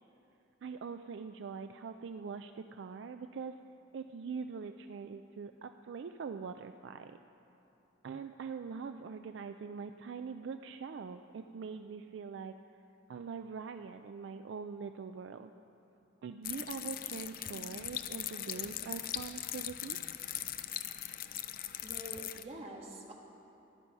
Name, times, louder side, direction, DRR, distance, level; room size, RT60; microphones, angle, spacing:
voice 1, 0.6-3.6 3.9-7.2 8.0-12.6 13.1-15.5 16.2-20.0, right 5 dB, 65° right, 8 dB, 0.3 m, -43 dB
sound 1, 16.4-22.4, left 12 dB, 45° left, 0.4 m, -40 dB
voice 2, 21.8-23.1, right 1 dB, 30° right, -1 dB, 1.5 m, -46 dB
14.0 x 11.0 x 5.4 m, 2.9 s
head